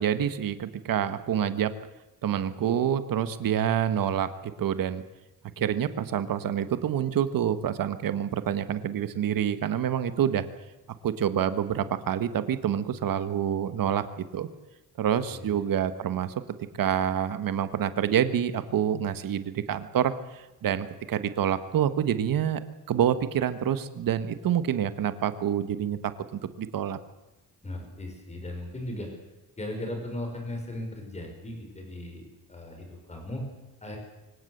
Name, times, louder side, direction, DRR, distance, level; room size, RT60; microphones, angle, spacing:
voice 1, 0.0-1.7 2.2-4.3 4.6-5.0 5.6-10.5 11.0-14.5 15.0-16.3 16.8-22.6 22.9-27.0, right 9 dB, 65° right, 11 dB, 1.5 m, -27 dB
voice 2, 15.3-15.6 27.6-29.2 29.6-32.2 32.5-33.5 33.8-34.0, left 1 dB, 20° left, 3 dB, 5.5 m, -37 dB
25.0 x 16.5 x 8.0 m, 1.1 s
wide cardioid pair, 175°, 37 cm